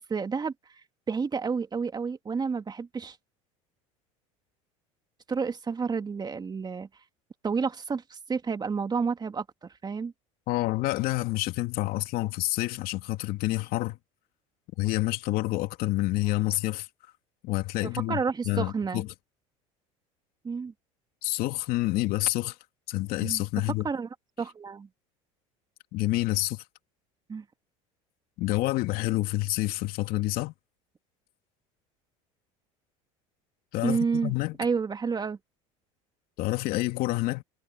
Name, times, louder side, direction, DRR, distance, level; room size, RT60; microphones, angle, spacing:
voice 1, 0.1-0.5 1.1-3.2 5.3-6.9 7.4-10.1 17.8-19.0 20.4-20.7 23.2-23.4 23.8-24.1 24.4-24.9 27.3-27.4 33.8-35.4, right 5 dB, 25° right, 2.2 m, -30 dB
voice 2, 10.5-14.0 14.8-16.9 17.4-18.2 18.4-19.1 21.2-22.5 22.9-23.8 25.9-26.6 28.4-30.5 33.7-34.6 36.4-37.4, left 18 dB, 65° left, 3.0 m, -28 dB
supercardioid pair, 90°, 16 cm